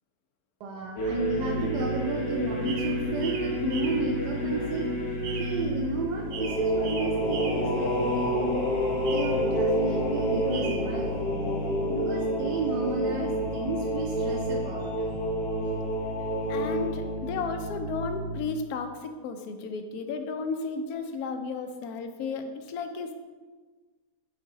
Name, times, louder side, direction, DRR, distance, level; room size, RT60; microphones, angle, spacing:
voice 1, 0.6-4.9 5.4-8.4 9.0-15.2, right 3 dB, 80° right, 1 dB, 1.2 m, -33 dB
sound 1, 1.0-18.4, equal, 90° left, 1.5 m, -29 dB
Mockingbird at Midnight (New Jersey), 2.2-11.2, right 5 dB, 65° right, 0.8 m, -43 dB
voice 2, 16.5-23.1, left 4 dB, 70° left, 7 dB, 1.0 m, -33 dB
6.5 x 4.3 x 3.8 m, 1.4 s
omnidirectional pair, 1.8 m